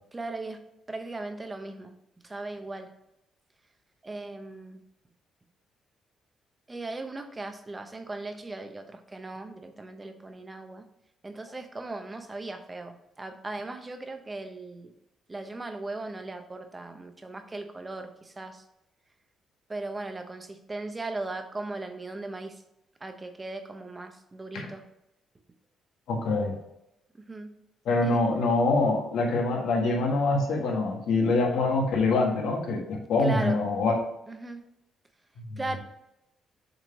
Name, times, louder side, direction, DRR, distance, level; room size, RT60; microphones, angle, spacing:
voice 1, 0.1-0.6 0.9-1.9 2.2-2.9 4.0-4.8 6.7-10.9 11.2-14.9 15.3-18.6 19.7-22.6 23.0-24.8 27.1-27.5 28.0-28.2 33.2-33.6 34.3-34.6 35.6-35.8, right 2 dB, 20° right, 7 dB, 0.9 m, -38 dB
voice 2, 26.1-26.5 27.8-34.0 35.5-35.6, left 3 dB, 80° left, 1 dB, 1.6 m, -25 dB
6.1 x 3.8 x 5.7 m, 0.85 s
cardioid pair, 90°, 0 cm